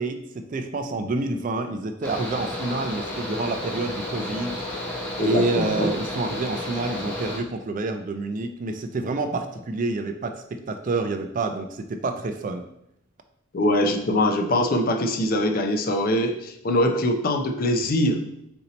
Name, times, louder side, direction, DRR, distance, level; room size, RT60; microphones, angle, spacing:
voice 1, 0.0-4.6 5.2-12.6, right 3 dB, 40° right, 7 dB, 0.3 m, -28 dB
Mechanical fan, 2.0-7.4, left 1 dB, 10° left, 0.8 m, -32 dB
voice 2, 5.2-5.9 13.5-18.2, left 1 dB, 45° left, 4 dB, 0.4 m, -23 dB
4.3 x 2.7 x 3.9 m, 0.77 s
head